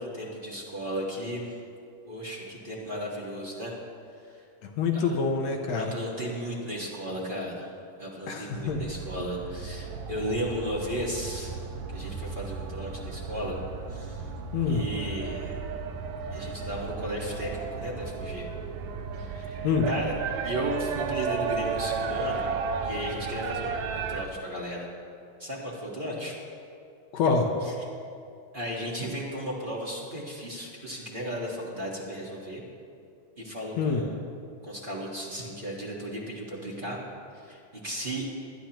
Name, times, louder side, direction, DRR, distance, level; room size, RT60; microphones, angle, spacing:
voice 1, 0.0-1.5 2.0-3.8 4.3-4.4 4.9-5.2 5.7-7.7 8.0-11.5 11.9-13.6 13.9-14.3 14.7-15.5 16.3-18.5 19.1-20.1 20.4-22.5 22.8-24.9 25.4-26.3 27.6-27.7 28.5-32.6 33.4-34.1 34.6-37.0 37.3-37.6 37.8-38.2, equal, 25° right, -5 dB, 1.1 m, -35 dB
voice 2, 4.6-5.8 8.3-8.8 14.5-14.8 19.6-19.9 27.1-27.5 33.8-34.0, left 5 dB, 70° left, 3 dB, 2.0 m, -26 dB
sound 1, 8.5-24.3, right 5 dB, 75° right, 2.0 m, -34 dB
22.0 x 10.0 x 3.0 m, 2.5 s
omnidirectional pair, 3.4 m